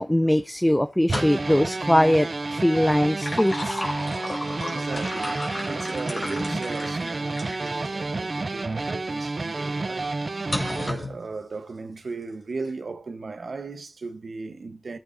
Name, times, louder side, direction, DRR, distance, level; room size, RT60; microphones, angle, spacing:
voice 1, 0.0-3.8 6.5-6.6, equal, 10° left, 0.4 m, -21 dB
sound 1, 1.0-1.7 2.9-7.8 8.4-8.5 10.5-11.2, left 1 dB, 45° left, 3.3 m, -33 dB
sound 2, 1.1-10.9, right 3 dB, 50° right, 0.5 m, -30 dB
voice 2, 4.7-10.2 10.8-15.0, right 3 dB, 70° right, 0.9 m, -36 dB
sound 3, 4.9-5.6, left 2 dB, 70° left, 1.5 m, -45 dB
18.5 x 8.5 x 2.6 m
cardioid pair, 60°, 0 cm